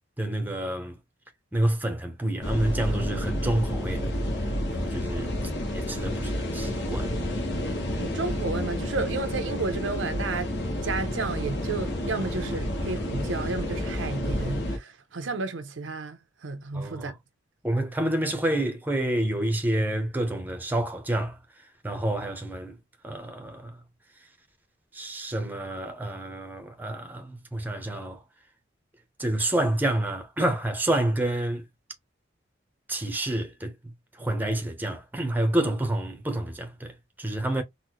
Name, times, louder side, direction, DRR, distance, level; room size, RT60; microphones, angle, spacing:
voice 1, 0.2-1.0 1.5-4.1 4.7-5.3 5.7-7.1 16.7-17.1 17.6-21.4 21.8-22.7 23.0-23.8 24.9-28.2 29.2-31.6 32.9-33.7 34.2-37.6, right 1 dB, 10° right, 0.6 m, -28 dB
sound 1, 2.4-14.8, left 1 dB, 65° left, 0.9 m, -30 dB
voice 2, 8.0-10.5 10.8-17.1, right 3 dB, 85° right, 0.6 m, -32 dB
3.9 x 2.1 x 2.9 m
head